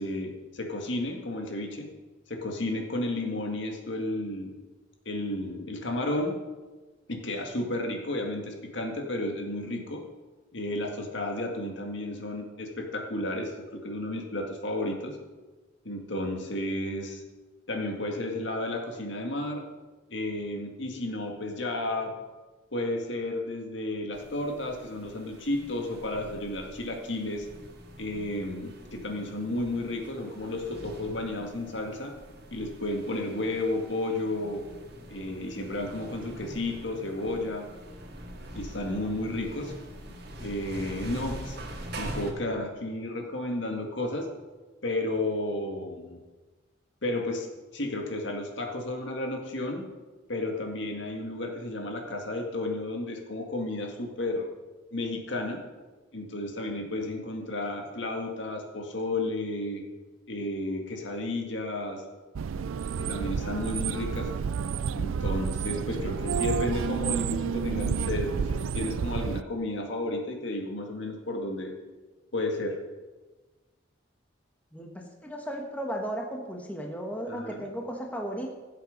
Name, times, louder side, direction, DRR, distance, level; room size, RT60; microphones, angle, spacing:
voice 1, 0.0-1.9 2.3-4.5 5.1-6.4 7.1-10.0 10.5-15.2 15.9-17.2 17.7-19.6 20.1-22.2 22.7-27.5 28.0-32.1 32.5-34.6 35.1-37.7 38.5-39.7 40.4-41.6 42.0-44.3 44.8-46.2 47.0-47.5 47.7-49.8 50.3-54.5 54.9-55.6 56.1-59.8 60.3-62.0 63.0-64.3 65.0-71.7 72.3-72.8 77.3-77.7, left 1 dB, 65° left, 2 dB, 2.0 m, -32 dB
sound 1, 24.1-42.3, right 1 dB, 55° right, 1.9 m, -43 dB
sound 2, 62.4-69.4, right 6 dB, 90° right, 0.4 m, -30 dB
voice 2, 75.2-78.5, right 1 dB, 5° left, 1 dB, 1.3 m, -35 dB
17.0 x 7.9 x 5.2 m, 1.3 s
head